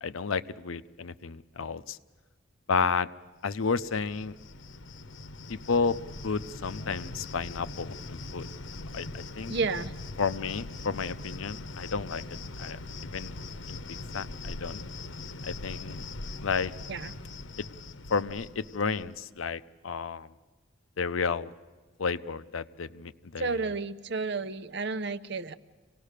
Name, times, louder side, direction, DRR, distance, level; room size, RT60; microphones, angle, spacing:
voice 1, 0.0-2.0 2.7-3.1 3.4-4.4 5.5-6.0 6.2-8.5 8.9-9.5 10.2-12.2 12.6-12.8 13.1-13.3 13.7-13.8 14.1-14.8 15.4-16.1 16.4-16.7 17.6-17.7 18.1-20.3 21.0-21.5 22.0-23.6, left 5 dB, 85° left, 13 dB, 0.7 m, -31 dB
Cricket, 3.5-19.2, left 2 dB, 70° left, 1.0 m, -41 dB
voice 2, 9.5-9.9 16.9-17.1 23.4-25.6, right 4 dB, 55° right, 14 dB, 0.7 m, -31 dB
26.0 x 18.5 x 6.7 m, 1.4 s
head